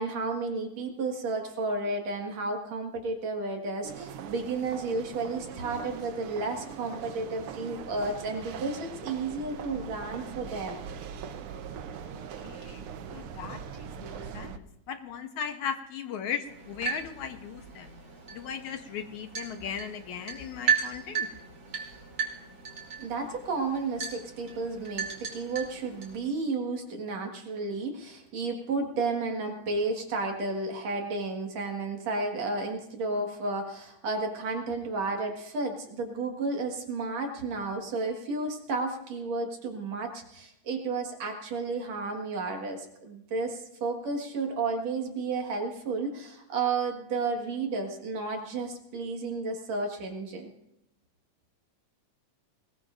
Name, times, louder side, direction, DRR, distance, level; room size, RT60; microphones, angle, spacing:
voice 1, 0.0-10.8 23.0-50.5, right 3 dB, 60° right, 2 dB, 2.8 m, -32 dB
sound 1, 3.8-14.6, right 7 dB, 80° right, 1.2 m, -41 dB
voice 2, 12.0-18.0 18.3-21.3, left 7 dB, 70° left, 6 dB, 2.2 m, -38 dB
sound 2, 16.4-26.2, right 7 dB, 40° right, 3.7 m, -35 dB
22.0 x 20.0 x 2.6 m, 0.82 s
omnidirectional pair, 3.7 m